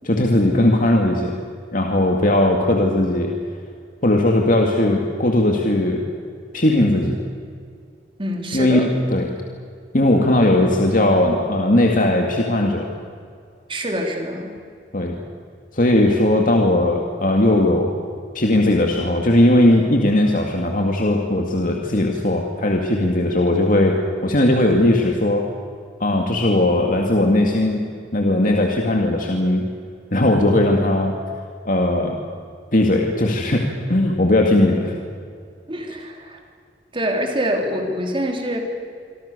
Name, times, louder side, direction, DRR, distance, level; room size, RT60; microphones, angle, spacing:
voice 1, 0.0-1.4 1.7-3.3 4.0-6.0 6.5-7.2 8.5-9.3 9.9-12.9 14.9-15.1 15.7-17.9 18.3-25.5 26.0-27.8 28.1-29.6 30.1-31.1 31.7-32.2 32.7-34.9, left 1 dB, 50° left, 1 dB, 2.4 m, -18 dB
voice 2, 8.2-8.9 13.7-14.5 35.7-36.4 36.9-38.6, equal, 30° right, 2 dB, 3.8 m, -25 dB
26.5 x 25.0 x 6.9 m, 2.2 s
head